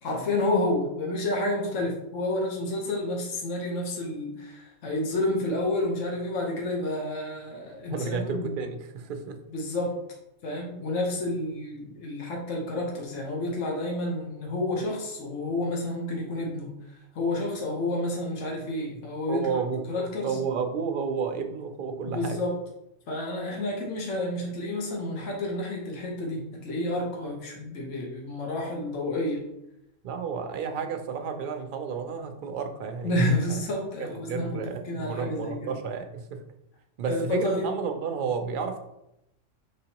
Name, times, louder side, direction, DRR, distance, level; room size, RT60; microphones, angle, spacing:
voice 1, 0.0-8.6 9.5-9.9 10.4-16.7 17.1-19.6 19.9-20.4 22.1-22.6 23.1-29.4 33.0-34.6 34.8-35.7 37.0-37.7, left 1 dB, 75° left, -1 dB, 1.3 m, -30 dB
voice 2, 7.9-9.4 19.3-22.4 30.0-33.1 34.0-36.4 37.0-38.8, right 6 dB, 60° right, 5 dB, 0.5 m, -31 dB
4.8 x 3.4 x 2.9 m, 0.85 s
omnidirectional pair, 1.3 m